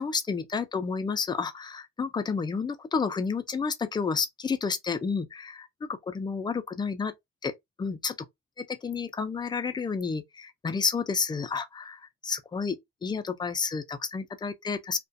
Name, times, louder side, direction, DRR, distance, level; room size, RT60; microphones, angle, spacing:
voice 1, 0.0-7.1 7.4-7.5 7.8-8.2 8.6-15.0, left 5 dB, 15° left, 0.3 m, -31 dB
2.4 x 2.1 x 2.5 m
cardioid pair, 105°, 30 cm